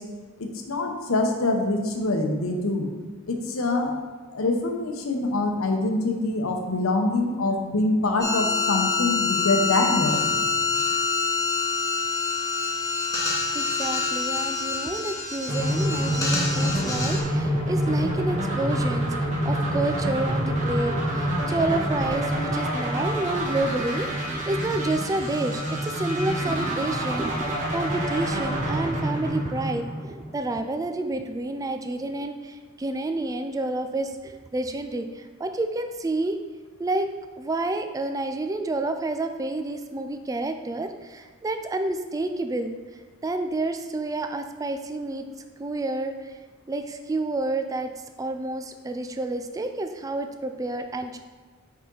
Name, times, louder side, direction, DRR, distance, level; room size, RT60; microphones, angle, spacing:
voice 1, 0.4-2.9 3.3-4.0 4.3-10.4, left 2 dB, 80° left, 4 dB, 0.9 m, -25 dB
sound 1, 8.2-17.2, left 4 dB, 15° left, 1.1 m, -26 dB
voice 2, 13.5-36.4 36.8-37.1 37.4-42.8 43.2-45.2 45.6-46.3 46.7-47.9 48.2-51.2, right 2 dB, 15° right, 6 dB, 0.3 m, -29 dB
sound 2, 15.5-30.4, equal, 35° right, 1.7 m, -27 dB
5.4 x 5.0 x 3.9 m, 1.4 s
head